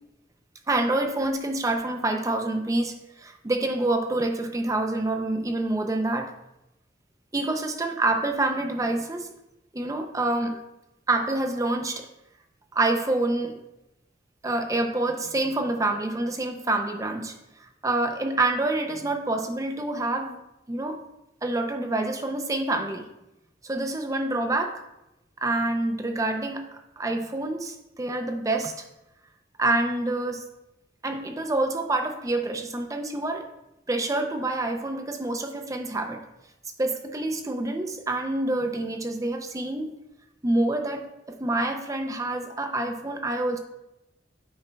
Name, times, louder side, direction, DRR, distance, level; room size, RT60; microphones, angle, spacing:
voice 1, 0.7-6.3 7.3-9.3 9.7-10.6 11.1-12.1 12.7-13.6 14.4-17.3 17.8-20.4 20.7-21.0 21.4-23.1 23.6-24.8 25.4-28.8 29.6-30.4 31.0-33.5 33.9-36.2 36.8-39.9 40.4-43.6, right 2 dB, 20° right, 5 dB, 0.5 m, -27 dB
8.9 x 5.3 x 2.2 m, 0.91 s
head